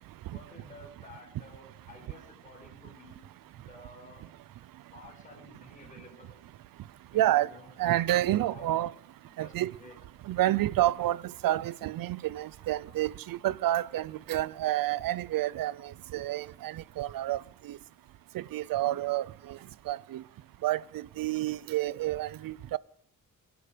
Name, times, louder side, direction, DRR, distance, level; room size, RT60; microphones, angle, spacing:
voice 1, 0.3-4.2 4.9-6.3 7.1-8.8 9.2-9.9, left 2 dB, 25° left, 4.7 m, -52 dB
voice 2, 7.1-7.5 7.8-8.9 9.4-9.8 10.2-17.8 18.3-19.6 19.8-20.2 20.6-22.8, right 14 dB, 80° right, 0.5 m, -29 dB
22.0 x 11.5 x 5.1 m
wide cardioid pair, 150°, 34 cm